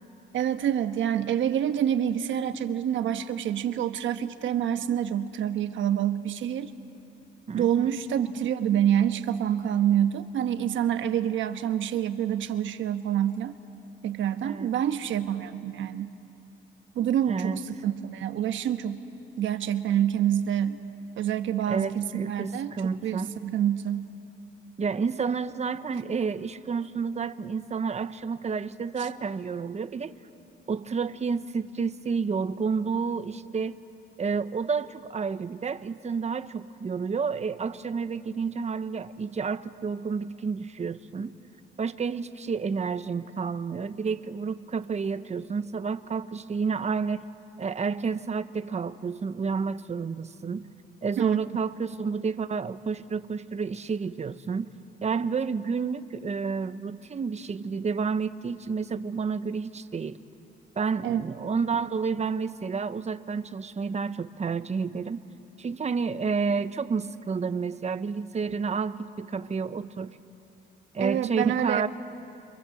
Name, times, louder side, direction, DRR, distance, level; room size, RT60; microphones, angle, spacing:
voice 1, 0.3-6.7 7.5-13.5 14.0-16.1 16.9-19.0 19.4-20.8 21.2-22.7 23.0-24.1 29.0-29.1 51.2-51.4 61.0-61.2 71.0-71.9, right 10 dB, 75° right, 9 dB, 1.3 m, -27 dB
voice 2, 7.5-8.0 14.4-14.7 17.3-17.6 21.7-23.4 24.8-30.1 30.7-33.8 34.2-41.4 41.8-47.2 47.6-50.7 51.0-54.7 55.0-60.2 60.8-65.2 65.6-70.1 70.9-71.9, right 5 dB, 35° right, 11 dB, 1.0 m, -30 dB
29.0 x 25.5 x 7.8 m, 2.6 s
cardioid pair, 90°, 20 cm